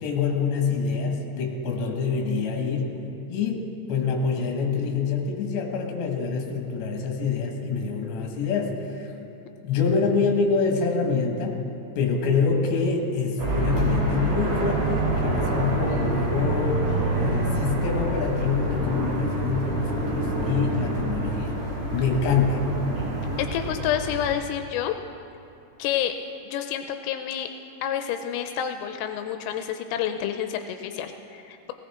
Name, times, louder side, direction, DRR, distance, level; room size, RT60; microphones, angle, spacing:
voice 1, 0.0-2.9 3.3-9.1 9.6-11.6 12.0-16.8 17.1-21.6 21.9-22.6, left 5 dB, 65° left, 1 dB, 3.6 m, -26 dB
sound 1, 13.4-24.3, right 2 dB, 45° right, 4.5 m, -27 dB
voice 2, 23.4-25.0 25.8-26.2 26.5-27.5 27.8-31.7, left 10 dB, 85° left, 7 dB, 3.2 m, -29 dB
19.0 x 18.0 x 3.7 m, 2.7 s
omnidirectional pair, 6.0 m